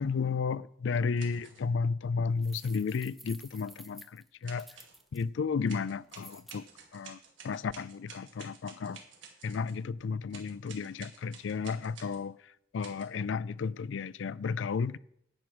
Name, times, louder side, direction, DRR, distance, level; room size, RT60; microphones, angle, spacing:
voice 1, 0.0-4.7 5.1-6.6 6.9-9.0 9.4-12.4 12.7-15.0, left 5 dB, 75° left, 0.4 m, -33 dB
sound 1, 1.2-1.7 2.6-3.0 4.4-5.0 5.7-9.8 10.3-12.2 12.8-13.1, right 6 dB, 85° right, 2.5 m, -52 dB
sound 2, 2.4-5.2 6.1-6.6, equal, ahead, 0.6 m, -52 dB
11.0 x 8.7 x 6.1 m
head